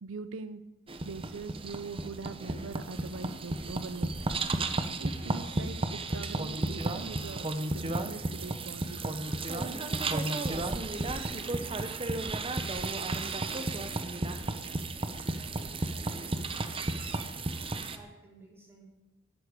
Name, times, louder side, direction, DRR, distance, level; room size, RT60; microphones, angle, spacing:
voice 1, 0.0-0.6 1.0-4.4 5.0-9.2, right 4 dB, 90° right, 12 dB, 0.6 m, -42 dB
sound 1, 0.9-18.0, right 2 dB, 30° right, 0.9 m, -33 dB
voice 2, 9.6-10.8 11.5-14.6 14.9-17.1 17.7-18.8, right 1 dB, 15° right, -5 dB, 4.8 m, -56 dB
12.5 x 8.4 x 8.3 m, 1.0 s
head